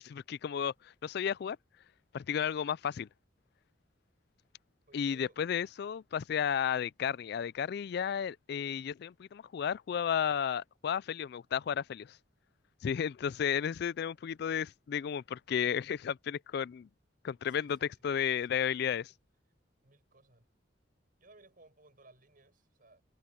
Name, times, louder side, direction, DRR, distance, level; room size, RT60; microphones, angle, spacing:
voice 1, 0.0-1.6 2.1-3.1 4.9-12.2 12.8-16.9 17.2-19.1, left 8 dB, 60° left, 0.3 m, -33 dB
voice 2, 4.9-5.4 11.0-11.2 17.5-18.0 18.2-18.6 18.9-19.2 19.8-20.5 21.2-23.0, right 2 dB, 50° right, 6.1 m, -62 dB
head